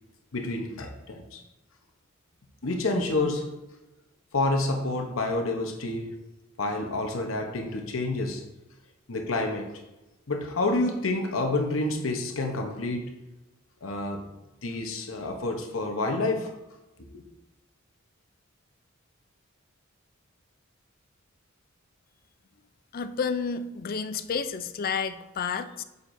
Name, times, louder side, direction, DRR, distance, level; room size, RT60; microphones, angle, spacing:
voice 1, 0.3-1.4 2.6-3.5 4.3-6.1 6.6-8.4 9.1-9.7 10.3-13.1 13.8-14.2 14.6-16.5 17.0-17.2, left 2 dB, 70° left, 4 dB, 0.9 m, -28 dB
voice 2, 22.9-25.8, left 5 dB, 45° left, 11 dB, 0.4 m, -30 dB
8.6 x 6.7 x 2.6 m, 1.0 s
head